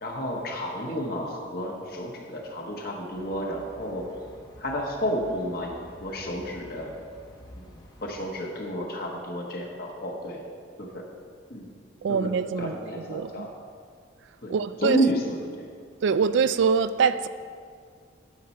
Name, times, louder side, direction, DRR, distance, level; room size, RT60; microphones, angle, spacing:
voice 1, 0.0-4.0 4.6-6.9 7.5-7.7 8.0-10.5 10.8-11.0 11.5-11.7 12.1-12.3 12.6-13.5 14.4-14.5 14.8-15.7, equal, 50° left, 1.3 m, -31 dB
sound 1, 3.1-8.2, equal, 20° left, 1.0 m, -49 dB
voice 2, 12.0-13.5 14.5-15.0 16.0-17.3, right 6 dB, 70° right, 0.3 m, -24 dB
10.5 x 6.9 x 4.4 m
head